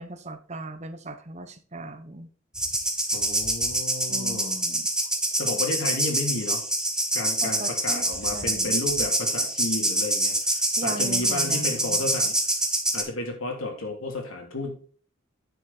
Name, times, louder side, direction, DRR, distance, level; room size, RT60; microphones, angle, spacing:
voice 1, 0.0-2.3 4.1-4.9 7.4-8.8 10.8-12.0, right 2 dB, 35° right, 10 dB, 1.0 m, -38 dB
sound 1, 2.5-13.0, right 1 dB, 5° right, 1.2 m, -26 dB
voice 2, 3.1-4.6 5.4-6.6 7.1-12.4 12.9-14.8, left 2 dB, 90° left, 1 dB, 3.1 m, -32 dB
9.5 x 6.7 x 4.4 m, 0.40 s
head